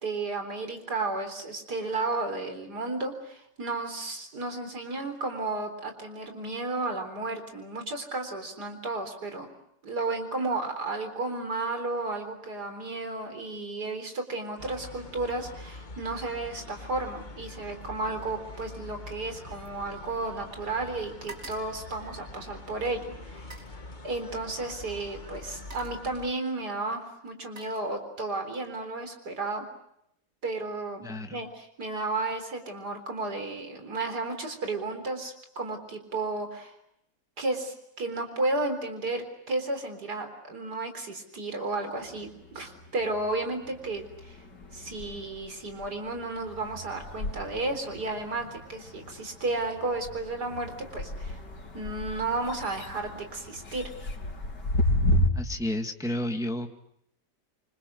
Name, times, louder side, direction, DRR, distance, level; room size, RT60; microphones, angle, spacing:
voice 1, 0.0-9.5 9.8-23.6 24.0-29.7 30.4-31.0 31.3-36.7 37.4-44.4 44.7-51.4 51.7-53.8, right 2 dB, 70° right, 7 dB, 4.5 m, -33 dB
sound 1, 14.6-26.3, left 2 dB, 30° left, 1.7 m, -44 dB
sound 2, 16.8-17.2 17.4-20.6 20.8-22.7 23.3-23.8 24.9-25.0 25.4-26.1 27.0-28.4 28.8-29.1, right 2 dB, 40° right, 4.4 m, -51 dB
voice 2, 31.0-31.4 55.3-56.7, left 1 dB, ahead, 4 dB, 1.8 m, -31 dB
sound 3, 42.0-43.3 43.6-55.3, left 1 dB, 90° left, 3.7 m, -33 dB
28.0 x 25.0 x 8.1 m, 0.76 s
omnidirectional pair, 1.8 m